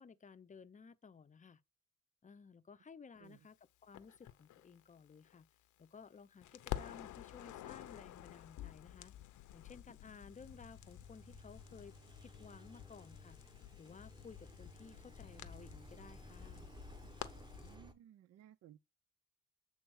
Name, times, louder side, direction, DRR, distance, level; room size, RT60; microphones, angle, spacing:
voice 1, 0.0-1.6 2.2-3.6 3.8-5.5 5.8-9.1 9.5-12.0 12.2-13.4 13.8-16.7, left 5 dB, 25° left, 0.6 m, -56 dB
Crackle, 3.9-6.1 6.4-17.7, left 13 dB, 75° left, 0.7 m, -50 dB
Engine, 10.3-17.9, equal, 15° right, 1.1 m, -57 dB
voice 2, 17.6-18.8, right 11 dB, 60° right, 0.5 m, -60 dB
7.8 x 3.4 x 6.2 m
cardioid pair, 90°, 30 cm